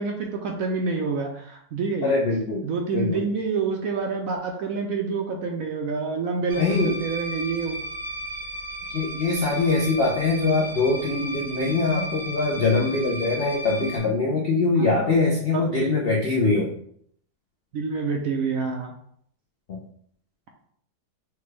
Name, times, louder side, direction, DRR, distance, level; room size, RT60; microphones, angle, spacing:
voice 1, 0.0-2.1 2.6-7.8 14.8-15.1 15.5-16.2 16.5-16.6 17.7-18.9, right 4 dB, 70° right, 1 dB, 0.9 m, -28 dB
voice 2, 2.0-2.7 2.9-3.2 6.6-7.0 8.9-16.7 19.7-19.8, left 3 dB, 60° left, -3 dB, 0.6 m, -23 dB
sound 1, 6.5-14.0, right 1 dB, 45° right, 0.8 m, -35 dB
5.9 x 2.2 x 3.2 m, 0.65 s
omnidirectional pair, 1.8 m